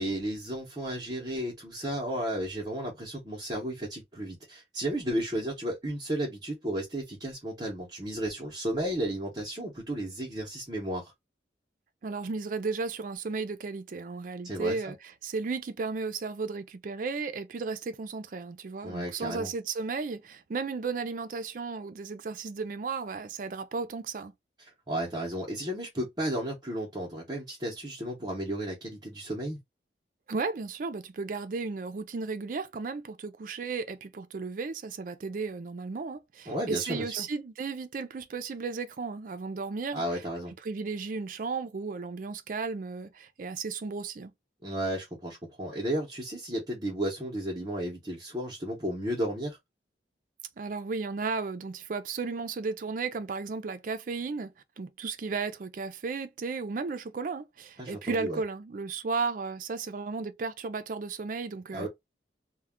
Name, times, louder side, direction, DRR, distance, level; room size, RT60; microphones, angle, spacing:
voice 1, 0.0-11.1 14.4-14.9 18.8-19.5 24.6-29.6 36.5-37.3 39.9-40.5 44.6-49.6 57.8-58.4 61.7-61.9, right 1 dB, 20° right, 0.7 m, -33 dB
voice 2, 12.0-15.0 15.2-24.3 30.3-40.0 40.6-44.3 50.6-61.9, right 4 dB, 45° right, 0.4 m, -34 dB
2.3 x 2.2 x 3.5 m
head